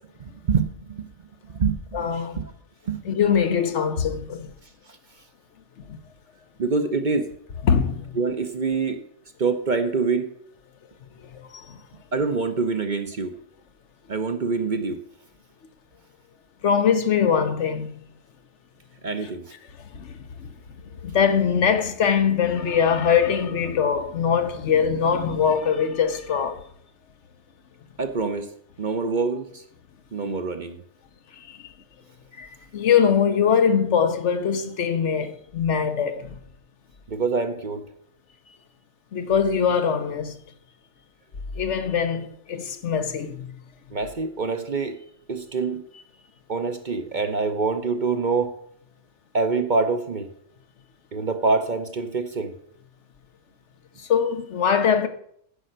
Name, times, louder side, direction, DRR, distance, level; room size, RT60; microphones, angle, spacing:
voice 1, 0.2-1.1 1.5-2.1 2.3-2.5 2.9-3.2 6.6-7.3 8.2-9.0 9.4-10.3 12.1-13.3 14.1-15.0 19.0-19.4 28.0-28.5 28.8-29.6 30.1-30.8 37.1-37.8 43.9-45.0 45.3-45.8 46.5-48.5 49.3-50.3 51.1-52.5, right 4 dB, 45° right, 0.9 m, -25 dB
voice 2, 1.9-2.4 3.0-4.5 5.9-6.0 7.6-8.2 11.3-11.8 16.6-18.0 19.2-19.3 19.9-20.5 21.0-26.6 30.1-30.2 31.3-31.7 32.4-36.4 39.1-40.4 41.6-43.5 54.0-55.1, left 7 dB, 75° left, 1.2 m, -22 dB
9.9 x 5.5 x 7.7 m
omnidirectional pair, 1.2 m